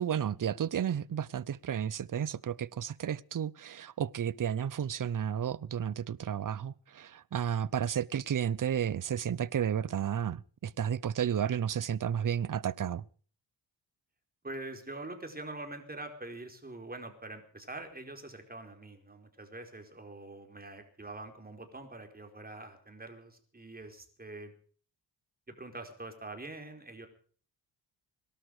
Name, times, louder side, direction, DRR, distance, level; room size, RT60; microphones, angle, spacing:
voice 1, 0.0-13.0, right 9 dB, 45° right, 0.8 m, -32 dB
voice 2, 14.4-24.5 25.5-27.1, right 2 dB, 20° right, 4.7 m, -44 dB
22.5 x 12.5 x 4.9 m
cardioid pair, 90°, 46 cm